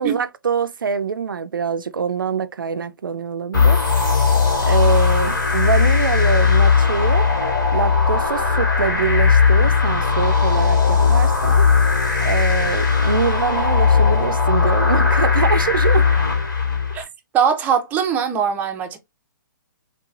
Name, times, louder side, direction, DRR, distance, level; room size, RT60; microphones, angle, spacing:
voice 1, 0.0-3.8 4.6-7.3 7.7-11.7 12.2-16.1, right 6 dB, 90° right, 0.4 m, -24 dB
sound 1, 3.5-17.0, left 5 dB, 80° left, 2.2 m, -17 dB
voice 2, 17.3-19.0, right 7 dB, 15° right, 0.5 m, -21 dB
3.2 x 3.0 x 2.3 m
hypercardioid pair, 135°, 11 cm